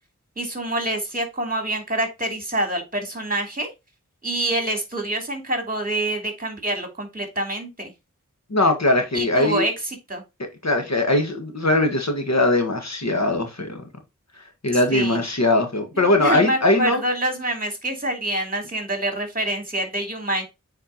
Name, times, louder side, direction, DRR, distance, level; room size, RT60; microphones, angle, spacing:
voice 1, 0.4-3.7 4.2-7.9 9.1-10.2 14.9-15.2 15.9-20.4, right 1 dB, 25° right, 2.9 m, -26 dB
voice 2, 8.5-9.6 10.6-13.9 14.6-17.0, left 2 dB, 55° left, 1.6 m, -20 dB
8.9 x 4.5 x 2.9 m
wide cardioid pair, 40°, 32 cm